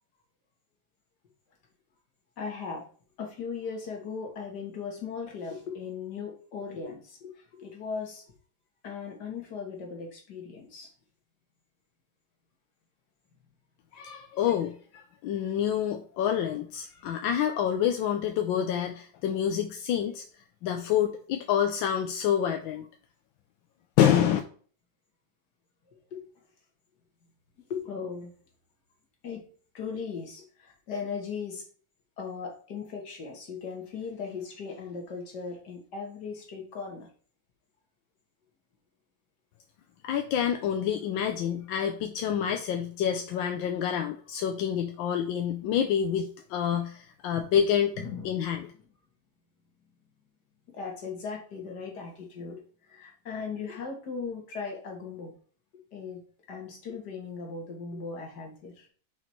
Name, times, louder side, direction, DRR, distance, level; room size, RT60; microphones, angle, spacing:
voice 1, 2.4-2.9 3.2-8.2 8.8-10.9 15.3-15.4 25.9-26.3 27.7-28.3 29.2-29.5 29.7-31.6 32.2-37.1 47.5-47.6 48.0-48.4 50.7-55.3 55.9-56.2 56.5-58.9, left 5 dB, 60° left, 1 dB, 2.2 m, -38 dB
voice 2, 13.9-20.2 20.6-22.9 24.0-24.4 40.0-47.9 48.2-48.7, left 9 dB, 85° left, 5 dB, 1.4 m, -27 dB
6.0 x 4.2 x 4.6 m, 0.43 s
omnidirectional pair, 2.1 m